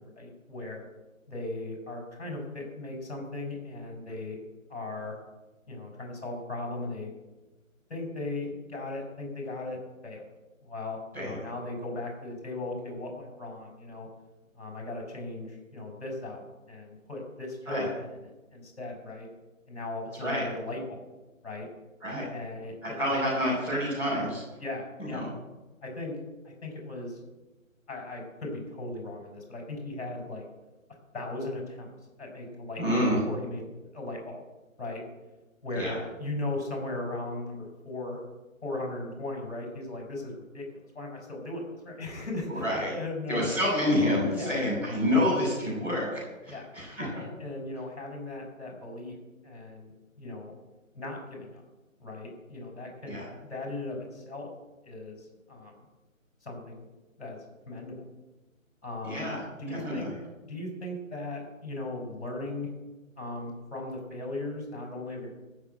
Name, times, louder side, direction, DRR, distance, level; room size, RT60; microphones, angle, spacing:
voice 1, 0.2-0.9 1.3-4.4 4.7-5.2 5.7-7.1 7.9-10.2 10.6-14.1 14.5-18.3 18.5-19.3 19.7-21.1 21.4-21.7 22.3-23.2 24.6-25.3 25.8-26.2 26.4-27.2 27.9-30.5 31.1-31.9 32.2-34.4 34.8-35.0 35.6-38.2 38.6-43.5 44.3-44.6 46.5-46.7 47.0-49.1 49.4-49.9 50.2-50.5 50.9-51.6 52.0-54.5 54.8-55.7 56.4-56.8 57.2-57.4 57.7-58.0 58.8-59.3 59.6-60.1 60.4-62.7 63.2-65.3, left 2 dB, 50° left, 0 dB, 5.9 m, -37 dB
voice 2, 22.8-24.4 25.0-25.3 32.8-33.2 35.7-36.0 42.5-42.9 43.3-47.2 53.1-53.3 59.0-59.4 59.7-60.1, left 1 dB, 5° right, -12 dB, 5.8 m, -28 dB
14.5 x 6.9 x 9.0 m, 1.1 s
figure-of-eight pair, 160°, 41 cm